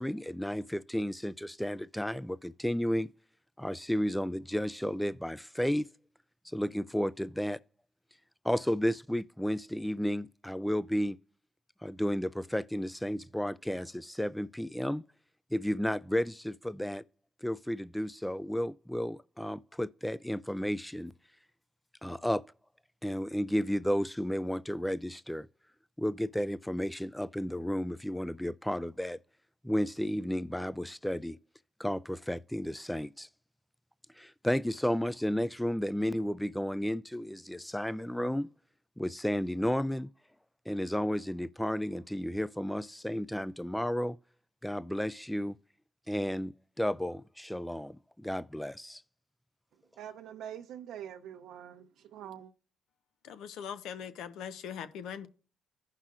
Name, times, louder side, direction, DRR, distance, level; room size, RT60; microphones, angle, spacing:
voice 1, 0.0-3.1 3.6-5.9 6.5-7.6 8.4-11.2 11.8-15.0 15.5-17.0 17.4-21.1 22.0-22.4 23.0-25.5 26.0-29.2 29.6-31.4 31.8-33.3 34.2-38.5 39.0-40.1 40.7-44.2 44.6-45.6 46.1-49.0, equal, 5° left, 0.3 m, -32 dB
voice 2, 50.0-51.8 52.1-52.5, right 10 dB, 85° right, 0.6 m, -44 dB
voice 3, 53.3-55.3, left 8 dB, 85° left, 0.7 m, -41 dB
15.5 x 5.7 x 2.4 m
cardioid pair, 90°, 0 cm